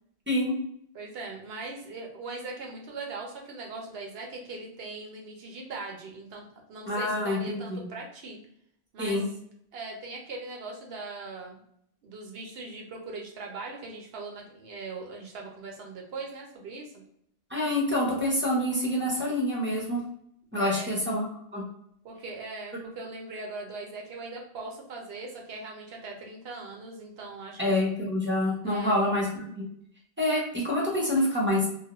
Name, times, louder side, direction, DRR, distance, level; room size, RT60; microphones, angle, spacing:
voice 1, 0.9-8.4 8.9-9.2 9.7-11.6 12.0-16.9 20.5-21.0 22.0-27.9 28.6-29.0, right 3 dB, 75° right, 0 dB, 0.9 m, -40 dB
voice 2, 6.9-7.8 9.0-9.3 17.5-20.0 20.5-21.3 21.5-21.6 27.6-29.4 30.2-31.7, left 1 dB, 15° right, -4 dB, 0.6 m, -26 dB
2.3 x 2.1 x 2.9 m, 0.70 s
omnidirectional pair, 1.1 m